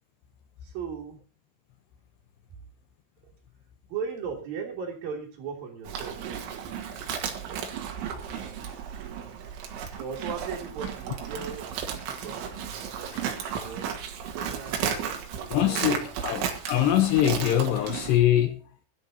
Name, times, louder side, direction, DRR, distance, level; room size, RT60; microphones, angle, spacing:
voice 1, 0.6-1.2 3.2-3.3 3.9-6.5 8.9-9.1 9.9-14.0 14.3-16.0, right 6 dB, 50° right, 4.7 m, -38 dB
Livestock farm animals working animals, 5.8-18.2, right 8 dB, 75° right, 4.0 m, -34 dB
voice 2, 15.5-18.6, left 11 dB, 75° left, 2.8 m, -23 dB
21.5 x 12.0 x 2.8 m
omnidirectional pair, 5.4 m